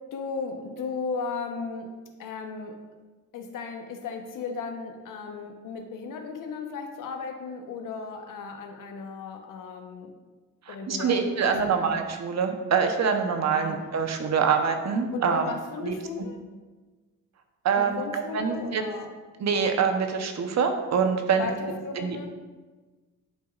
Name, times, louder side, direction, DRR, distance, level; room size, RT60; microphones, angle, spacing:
voice 1, 0.1-1.9 2.2-2.8 3.3-10.1 10.7-11.9 13.5-13.8 15.1-16.4 17.8-19.1 21.3-22.3, left 5 dB, 70° left, 4 dB, 1.0 m, -36 dB
voice 2, 10.7-15.4 15.8-15.9 17.6-18.8 19.4-21.5 22.0-22.2, right 6 dB, 55° right, 5 dB, 0.9 m, -25 dB
11.5 x 4.7 x 2.4 m, 1.3 s
cardioid pair, 90°, 33 cm